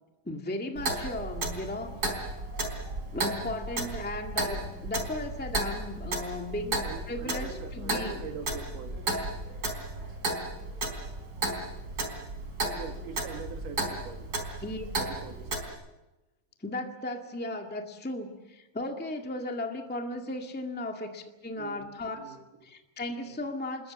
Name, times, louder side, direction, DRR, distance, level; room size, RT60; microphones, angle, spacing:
voice 1, 0.2-2.3 3.1-8.3 14.6-14.8 16.6-22.3 22.6-23.9, left 2 dB, 10° left, 3 dB, 0.6 m, -36 dB
Clock, 0.8-15.7, right 2 dB, 25° right, 3.9 m, -34 dB
voice 2, 6.8-9.1 12.7-14.3 15.0-15.8 21.6-21.8 22.2-22.5 23.2-23.4, right 5 dB, 65° right, 5 dB, 3.6 m, -43 dB
27.5 x 21.5 x 7.5 m, 1.0 s
omnidirectional pair, 4.0 m